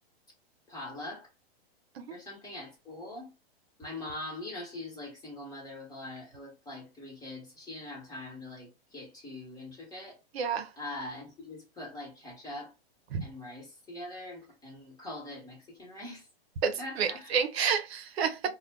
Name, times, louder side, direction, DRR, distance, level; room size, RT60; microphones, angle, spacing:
voice 1, 0.7-1.3 2.1-3.3 3.8-10.2 10.8-12.7 13.2-16.3 16.8-17.4, left 2 dB, 10° left, 1.1 m, -42 dB
voice 2, 10.3-10.7 13.1-13.2 16.6-18.5, right 6 dB, 85° right, 0.6 m, -30 dB
2.4 x 2.1 x 3.4 m
hypercardioid pair, 145°, 31 cm